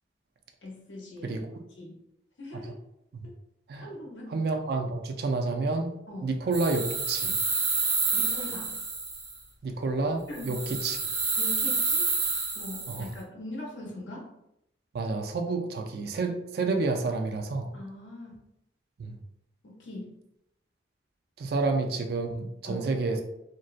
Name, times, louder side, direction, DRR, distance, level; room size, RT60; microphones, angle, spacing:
voice 1, 0.6-1.4 1.8-1.9 2.4-2.7 3.8-4.4 6.1-6.3 8.1-8.8 10.3-10.7 11.4-12.1 12.5-14.3 17.7-18.4 19.6-20.1 22.6-22.9, left 1 dB, 85° left, -2 dB, 0.7 m, -41 dB
voice 2, 4.3-6.0 6.2-6.8 7.1-7.4 9.6-11.0 12.9-13.1 14.9-17.7 19.0-19.2 21.4-23.2, right 3 dB, 55° right, 5 dB, 0.3 m, -29 dB
sound 1, 6.5-9.4 10.3-13.1, right 4 dB, 85° right, 0.8 m, -29 dB
2.6 x 2.0 x 2.4 m, 0.81 s
head